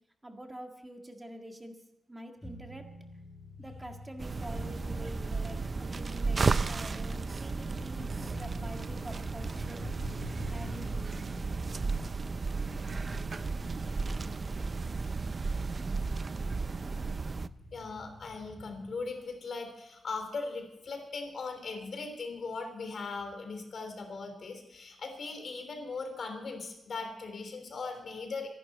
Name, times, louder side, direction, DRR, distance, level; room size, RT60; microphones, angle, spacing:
voice 1, 0.2-1.8 2.1-2.9 3.6-10.0 10.5-11.3, right 1 dB, 15° right, 3 dB, 1.9 m, -46 dB
sound 1, 2.4-19.2, left 2 dB, 15° left, 6.9 m, -48 dB
sound 2, 4.2-17.5, right 4 dB, 35° right, 0.4 m, -34 dB
voice 2, 17.7-28.5, left 4 dB, 55° left, 5 dB, 3.4 m, -39 dB
25.0 x 11.5 x 4.3 m, 0.89 s
wide cardioid pair, 145°, 0 cm